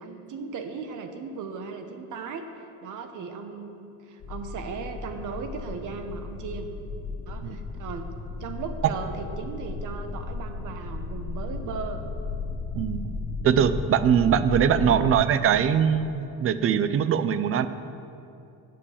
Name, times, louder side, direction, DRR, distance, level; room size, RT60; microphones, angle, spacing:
voice 1, 0.0-2.5 2.8-6.7 7.3-8.1 8.4-12.1 14.8-15.1, right 5 dB, 55° right, 7 dB, 1.0 m, -37 dB
sound 1, 4.2-15.1, left 3 dB, 65° left, 1.8 m, -35 dB
voice 2, 13.4-17.7, right 8 dB, 40° right, 13 dB, 0.5 m, -22 dB
8.3 x 7.6 x 7.2 m, 2.7 s
cardioid pair, 125°, 36 cm